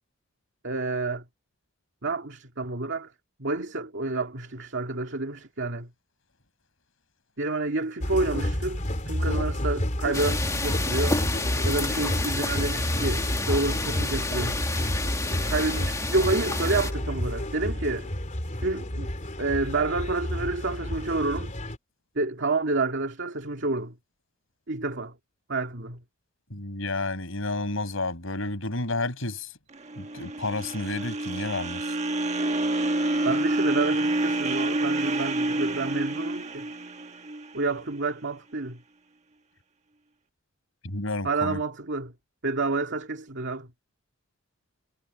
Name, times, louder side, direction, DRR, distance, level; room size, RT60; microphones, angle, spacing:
voice 1, 0.6-1.2 2.0-3.1 3.4-5.9 7.4-11.2 11.6-14.7 15.5-18.1 18.6-19.1 19.4-21.5 22.2-24.0 24.7-25.2 25.5-26.0 33.2-36.7 37.5-38.8 41.2-42.1 42.4-43.7, right 3 dB, 60° right, 2.4 m, -29 dB
sound 1, 8.0-21.8, left 1 dB, 40° left, 3.4 m, -30 dB
sound 2, 10.1-16.9, left 2 dB, 15° left, 1.9 m, -30 dB
voice 2, 26.5-29.5 30.0-31.9 40.8-41.6, left 2 dB, 75° left, 6.7 m, -31 dB
sound 3, 29.7-38.0, right 2 dB, 35° right, 1.3 m, -28 dB
head